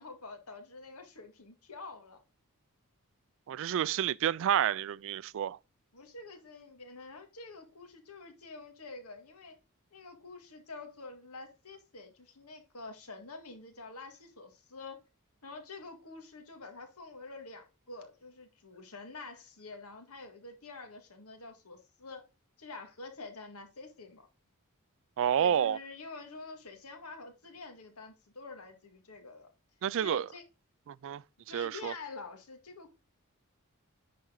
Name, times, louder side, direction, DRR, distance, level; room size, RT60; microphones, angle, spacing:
voice 1, 0.0-2.2 5.9-9.6 9.9-15.0 15.4-22.2 22.6-24.3 25.4-29.5 30.0-30.4 31.5-32.9, left 3 dB, 80° left, 1.9 m, -47 dB
voice 2, 3.5-5.6 25.2-25.8 29.8-30.3 30.9-31.9, right 9 dB, 60° right, 0.3 m, -30 dB
10.5 x 4.3 x 3.8 m
head